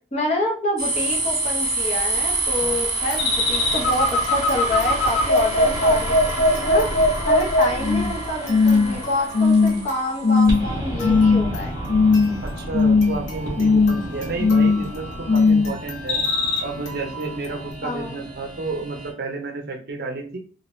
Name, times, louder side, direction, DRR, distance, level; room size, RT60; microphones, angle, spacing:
voice 1, 0.1-6.9 7.3-11.7 17.8-18.2, left 1 dB, 35° left, -3 dB, 0.9 m, -27 dB
sound 1, 0.8-19.1, right 1 dB, 20° right, 1.1 m, -29 dB
sound 2, 2.5-17.7, equal, 90° left, 1.1 m, -41 dB
sound 3, 3.2-8.2 8.5-9.0 9.3-9.9 10.2-10.6 11.0-11.6 11.9-12.4 12.7-13.2 13.6-14.0 14.4-14.9 15.3-15.7 16.1-16.6, left 3 dB, 60° left, 0.5 m, -18 dB
voice 2, 12.4-16.2 16.6-20.4, right 3 dB, 50° right, 3 dB, 0.6 m, -31 dB
2.7 x 2.5 x 3.0 m, 0.41 s
head